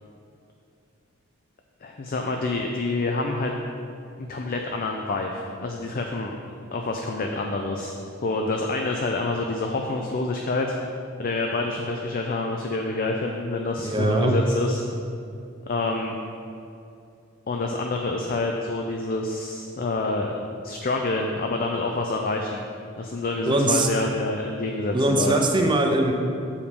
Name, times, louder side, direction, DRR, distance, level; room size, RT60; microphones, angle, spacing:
voice 1, 1.8-3.5 4.2-6.4 6.7-7.9 8.2-10.7 11.2-14.8 15.7-16.1 17.5-20.4 20.6-22.6 23.0-25.5, left 2 dB, 45° left, 2 dB, 0.5 m, -27 dB
voice 2, 13.8-14.4 23.5-23.9 24.9-26.1, right 2 dB, 25° right, 2 dB, 0.7 m, -21 dB
6.8 x 4.9 x 5.2 m, 2.5 s
head